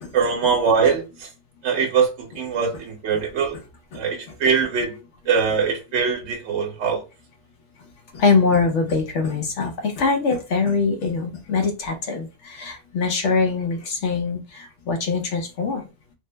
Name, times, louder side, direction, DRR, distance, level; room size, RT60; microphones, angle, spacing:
voice 1, 0.1-1.3 1.6-3.6 3.9-4.9 5.3-7.0, right 6 dB, 70° right, 0.9 m, -22 dB
voice 2, 8.1-15.9, left 4 dB, 70° left, 1.1 m, -23 dB
3.1 x 2.0 x 3.2 m
omnidirectional pair, 1.2 m